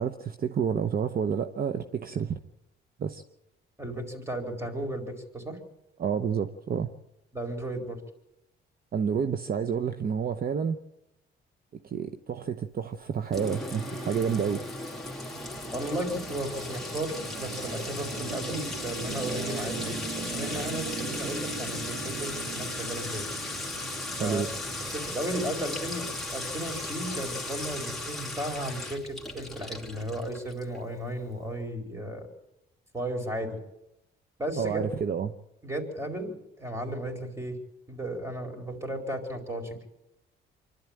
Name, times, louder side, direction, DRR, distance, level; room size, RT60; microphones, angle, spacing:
voice 1, 0.0-2.4 3.0-3.2 6.0-6.9 8.9-10.8 11.7-14.6 24.2-24.5 34.6-35.3, right 7 dB, 50° right, 9 dB, 0.9 m, -29 dB
voice 2, 3.8-5.6 7.3-8.0 15.7-23.3 24.2-24.4 24.9-32.3 32.9-33.6 34.4-34.8 35.6-37.6 37.9-39.9, right 1 dB, 15° right, 4 dB, 4.4 m, -34 dB
Sink (filling or washing) / Trickle dribble / Fill (with liquid), 13.3-30.8, left 2 dB, ahead, 2.8 m, -36 dB
sound 1, 15.4-25.1, right 5 dB, 70° right, 2.3 m, -40 dB
25.0 x 12.0 x 8.9 m, 0.89 s
cardioid pair, 90°, 20 cm